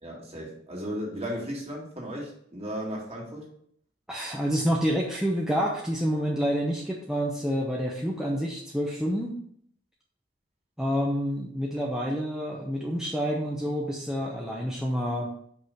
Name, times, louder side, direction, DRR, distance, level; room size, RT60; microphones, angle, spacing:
voice 1, 0.0-3.5, equal, 35° right, -3 dB, 2.2 m, -35 dB
voice 2, 4.1-9.4 10.8-15.3, equal, 5° right, -2 dB, 0.7 m, -28 dB
5.4 x 5.0 x 5.8 m, 0.65 s
head